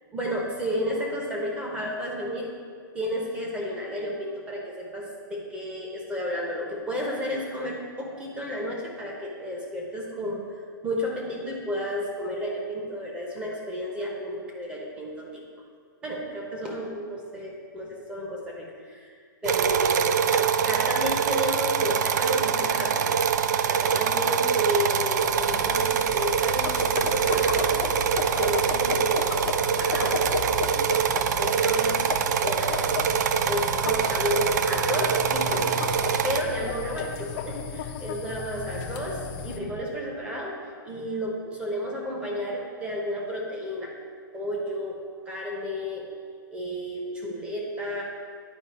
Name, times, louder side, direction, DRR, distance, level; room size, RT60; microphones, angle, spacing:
voice 1, 0.1-2.5 2.9-15.4 16.0-19.1 19.4-27.9 28.3-30.3 31.4-32.1 32.4-33.0 33.5-35.9 36.2-43.9 44.3-45.0 45.3-46.1 46.5-48.0, equal, 10° right, -2 dB, 1.0 m, -32 dB
sound 1, 19.4-36.4, right 7 dB, 55° right, 0.4 m, -24 dB
sound 2, 25.2-39.6, left 6 dB, 30° left, 0.5 m, -34 dB
10.0 x 4.9 x 4.3 m, 2.1 s
hypercardioid pair, 160°, 11 cm